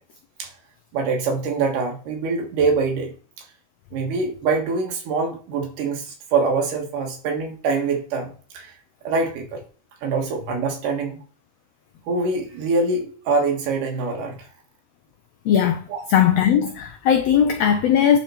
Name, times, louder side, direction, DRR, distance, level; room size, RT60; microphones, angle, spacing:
voice 1, 0.9-3.1 3.9-8.7 9.0-9.6 10.0-11.2 12.1-14.5 15.9-16.0, right 4 dB, 85° right, 3.1 m, -24 dB
voice 2, 15.5-18.2, left 9 dB, 85° left, 1.4 m, -18 dB
10.0 x 4.0 x 4.4 m
omnidirectional pair, 3.7 m